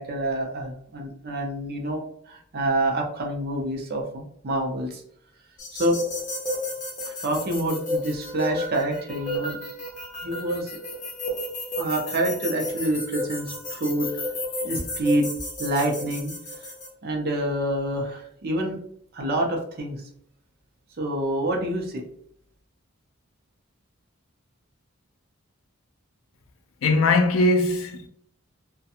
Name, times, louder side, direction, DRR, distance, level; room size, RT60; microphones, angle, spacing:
voice 1, 0.0-4.0 4.4-5.0 5.7-6.0 7.1-9.6 10.2-10.7 11.8-14.1 14.6-15.3 15.6-16.3 17.0-18.8 19.1-20.1 21.0-22.0, right 1 dB, 50° right, 0.5 m, -27 dB
sound 1, 5.6-16.9, left 1 dB, 35° left, 0.8 m, -32 dB
voice 2, 26.8-28.1, left 2 dB, 70° left, 0.4 m, -20 dB
2.4 x 2.2 x 2.7 m
head